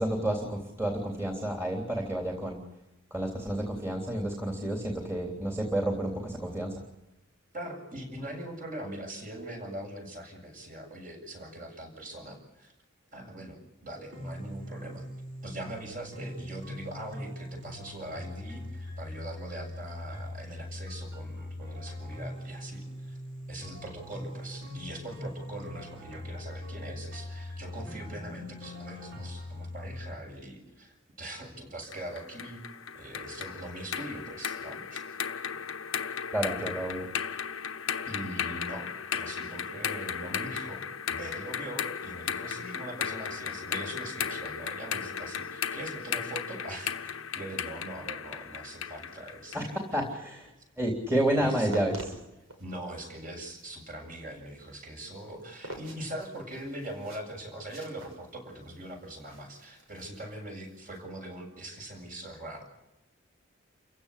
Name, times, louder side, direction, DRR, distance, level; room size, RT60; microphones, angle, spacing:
voice 1, 0.0-2.6 3.1-6.8 36.3-37.1 49.5-49.6 49.9-50.5 50.8-52.1, right 1 dB, 15° right, 0 dB, 3.4 m, -30 dB
voice 2, 7.5-12.7 13.1-15.1 15.4-23.2 23.5-32.6 32.9-35.1 38.1-50.0 51.3-51.7 52.6-62.6, right 1 dB, 40° right, 2 dB, 7.7 m, -42 dB
sound 1, 14.1-30.1, left 1 dB, 55° right, 5.0 m, -41 dB
sound 2, 31.9-49.7, left 7 dB, 75° left, 1.0 m, -36 dB
sound 3, 51.5-61.0, right 1 dB, 90° right, 6.2 m, -47 dB
29.5 x 16.5 x 8.5 m, 0.93 s
head